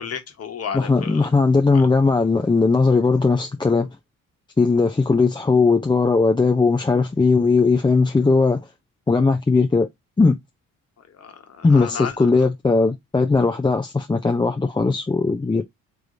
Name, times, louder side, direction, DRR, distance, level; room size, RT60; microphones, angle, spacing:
voice 1, 0.0-1.3 1.7-1.9 11.1-12.1, left 7 dB, 55° left, 1.4 m, -32 dB
voice 2, 0.7-3.9 4.6-8.6 9.1-9.9 10.2-10.4 11.6-15.6, left 4 dB, 15° left, 0.6 m, -18 dB
3.4 x 3.3 x 3.9 m
cardioid pair, 90°, 30 cm